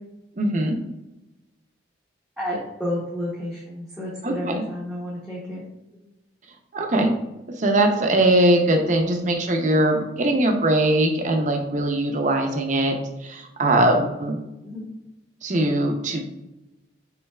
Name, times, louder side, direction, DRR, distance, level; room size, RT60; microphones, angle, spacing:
voice 1, 0.4-0.8 4.2-4.6 6.7-7.1 7.6-12.9 13.2-14.4 15.4-16.3, right 1 dB, 40° right, 3 dB, 0.6 m, -21 dB
voice 2, 2.4-5.6 14.6-14.9, left 1 dB, ahead, -8 dB, 0.8 m, -31 dB
5.5 x 3.9 x 2.3 m, 0.97 s
head